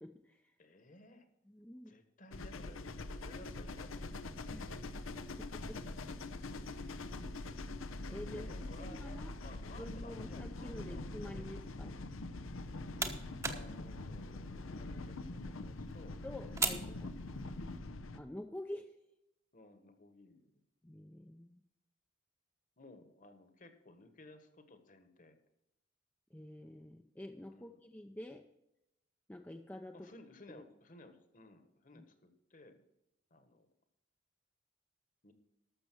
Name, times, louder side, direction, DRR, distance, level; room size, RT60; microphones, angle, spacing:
voice 1, 0.0-0.5 1.5-1.9 4.5-4.8 5.4-5.8 6.7-7.1 8.1-9.4 9.8-12.0 16.2-17.1 18.1-19.0 20.8-21.6 26.3-28.4 29.3-30.1 31.9-32.0, left 1 dB, 10° left, 4 dB, 0.5 m, -48 dB
voice 2, 0.6-1.3 1.8-4.2 8.3-11.4 13.5-16.2 16.7-17.3 19.5-20.6 22.8-25.4 27.5-27.8 29.9-32.8 33.3-33.7 35.2-35.3, left 2 dB, 40° left, 9 dB, 1.4 m, -57 dB
sound 1, 2.3-18.2, left 2 dB, 85° left, 0.7 m, -44 dB
sound 2, 12.5-17.8, right 4 dB, 15° right, 0.9 m, -42 dB
12.5 x 6.7 x 6.2 m, 0.85 s
head